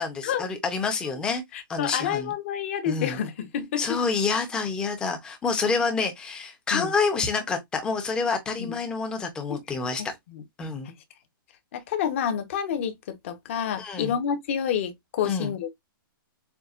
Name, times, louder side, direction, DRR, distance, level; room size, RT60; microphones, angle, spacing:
voice 1, 0.0-1.4 1.7-2.3 2.9-3.2 3.8-10.0 10.6-10.9 13.8-14.2 15.2-15.5, left 4 dB, 5° left, 0.7 m, -28 dB
voice 2, 1.5-4.0 6.7-6.9 8.6-8.7 9.5-9.6 10.0-10.1 10.3-10.4 11.7-15.7, left 8 dB, 35° left, 0.9 m, -29 dB
6.9 x 2.3 x 2.4 m
hypercardioid pair, 175°, 12 cm